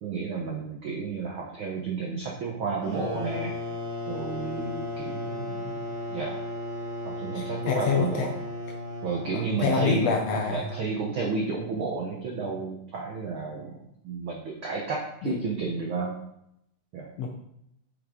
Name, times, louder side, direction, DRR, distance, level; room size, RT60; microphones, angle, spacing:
voice 1, 0.0-3.5 4.1-5.7 6.1-6.4 7.2-8.4 9.0-10.0 10.5-16.2 16.9-17.1, right 4 dB, 80° right, 0 dB, 1.1 m, -31 dB
sound 1, 2.8-11.3, left 1 dB, 25° right, 1.4 m, -36 dB
voice 2, 7.3-8.3 9.3-10.7 15.2-15.4 17.2-17.3, left 6 dB, 75° left, 2 dB, 1.6 m, -27 dB
8.2 x 5.6 x 3.7 m, 0.78 s
omnidirectional pair, 3.7 m